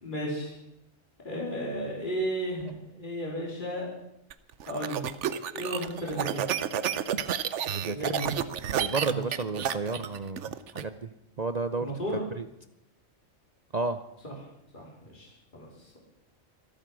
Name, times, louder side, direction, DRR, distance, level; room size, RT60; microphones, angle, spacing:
voice 1, 0.0-0.6 1.2-3.9 4.7-5.0 5.5-6.6 7.9-8.3 9.0-9.3 11.8-12.2 14.2-14.3 14.7-15.7, right 1 dB, 35° left, -3 dB, 4.1 m, -34 dB
sound 1, 4.3-10.8, right 9 dB, 65° right, 1.0 m, -31 dB
voice 2, 7.7-8.1 8.7-11.1 11.4-11.9 12.4-12.5 13.7-14.0, right 3 dB, 40° right, 10 dB, 0.7 m, -32 dB
24.5 x 8.9 x 6.2 m, 0.82 s
omnidirectional pair, 1.4 m